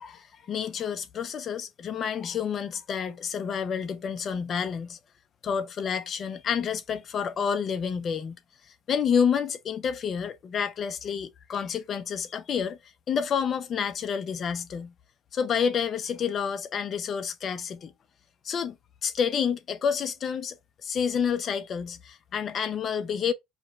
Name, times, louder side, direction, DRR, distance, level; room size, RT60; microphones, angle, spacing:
voice 1, 0.0-5.0 5.4-8.4 8.9-12.8 13.1-14.9 15.3-17.9 18.4-18.8 19.0-20.6 20.8-23.3, left 7 dB, 40° left, 0.6 m, -29 dB
4.9 x 2.3 x 3.2 m
cardioid pair, 130°, 0 cm